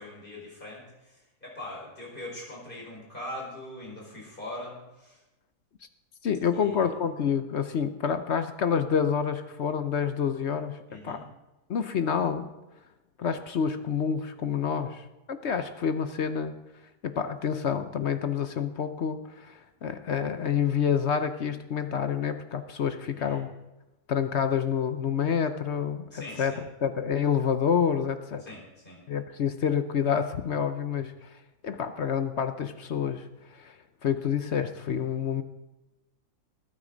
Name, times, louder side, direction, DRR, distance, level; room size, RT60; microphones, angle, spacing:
voice 1, 0.0-5.2 6.5-6.9 10.9-11.2 23.1-23.4 26.1-26.6 28.4-29.0, left 1 dB, 30° left, -4 dB, 5.0 m, -42 dB
voice 2, 6.2-11.2 11.7-12.5 13.2-16.5 17.0-23.5 24.1-28.4 29.1-31.3 31.6-33.7 34.0-35.4, left 7 dB, 55° left, 10 dB, 0.8 m, -28 dB
20.0 x 9.5 x 3.9 m, 1.0 s
omnidirectional pair, 1.7 m